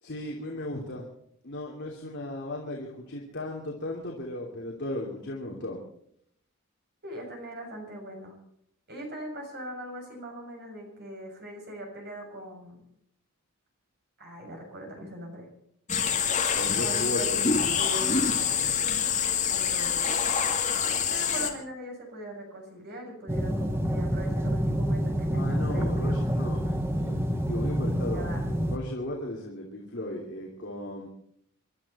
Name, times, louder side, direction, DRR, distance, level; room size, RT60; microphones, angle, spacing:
voice 1, 0.0-1.1 1.4-5.8 16.5-17.4 25.3-31.1, left 1 dB, 55° left, -2 dB, 3.0 m, -36 dB
voice 2, 7.0-8.4 8.9-12.8 14.2-15.5 16.8-18.6 19.5-20.2 21.1-26.0 28.1-28.4, right 1 dB, 50° right, 1 dB, 6.9 m, -40 dB
sound 1, 15.9-21.5, left 7 dB, 35° left, 2.2 m, -26 dB
sound 2, 23.3-28.8, equal, 10° right, 1.4 m, -27 dB
27.0 x 12.5 x 4.3 m, 0.70 s
head